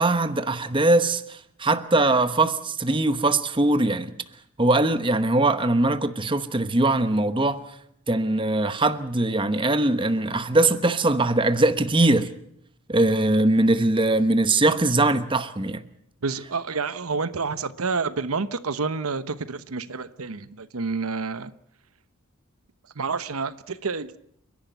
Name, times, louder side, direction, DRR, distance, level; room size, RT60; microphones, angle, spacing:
voice 1, 0.0-4.1 4.6-7.6 8.1-12.3 12.9-15.8, right 2 dB, 25° right, 1.0 m, -21 dB
voice 2, 16.2-21.5 22.9-24.2, right 4 dB, 85° right, 1.0 m, -29 dB
29.5 x 11.5 x 9.3 m
head